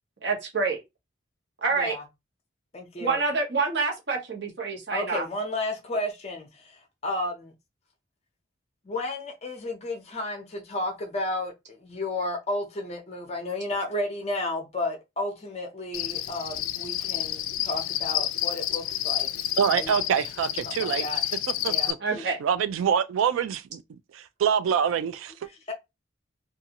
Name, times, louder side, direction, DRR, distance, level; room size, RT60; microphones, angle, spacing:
voice 1, 0.2-0.8 1.6-1.9 3.0-5.2 22.0-22.4, right 4 dB, 55° right, 0.9 m, -27 dB
voice 2, 2.7-3.2 4.9-6.8 7.0-7.5 8.9-11.5 11.8-19.3 19.7-19.9 20.8-21.2 21.7-21.9 25.7-25.8, left 1 dB, 30° left, 0.5 m, -32 dB
Cricket, 15.9-21.9, left 12 dB, 85° left, 0.3 m, -29 dB
voice 3, 19.6-21.1 21.6-22.0 22.4-23.8 24.1-25.3, right 7 dB, 85° right, 0.3 m, -25 dB
2.5 x 2.4 x 2.8 m
head